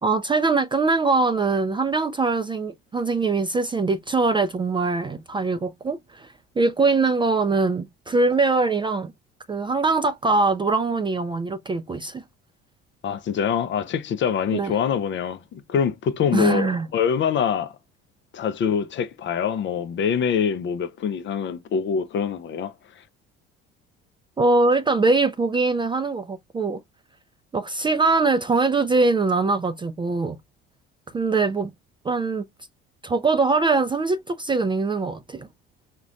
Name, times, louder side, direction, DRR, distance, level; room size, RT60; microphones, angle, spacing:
voice 1, 0.0-6.3 6.6-9.1 9.5-12.2 14.5-14.7 16.3-16.9 24.4-26.8 27.5-30.4 31.1-31.7 32.0-32.4 33.0-35.5, right 3 dB, 15° right, 0.4 m, -22 dB
voice 2, 13.0-17.8 18.3-23.0, left 7 dB, 40° left, 0.5 m, -25 dB
4.9 x 2.2 x 2.4 m
hypercardioid pair, 60°, 30 cm